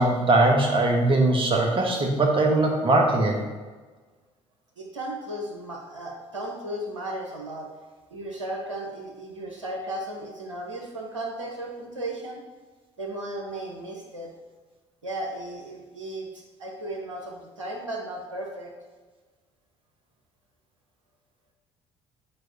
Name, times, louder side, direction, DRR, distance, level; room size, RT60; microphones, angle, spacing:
voice 1, 0.0-3.4, right 2 dB, 35° right, 1 dB, 1.3 m, -21 dB
voice 2, 4.8-7.7 8.1-12.4 13.0-14.3 15.0-18.7, right 1 dB, 85° right, 1 dB, 0.9 m, -35 dB
9.7 x 4.7 x 3.0 m, 1.3 s
figure-of-eight pair, 50°, 15 cm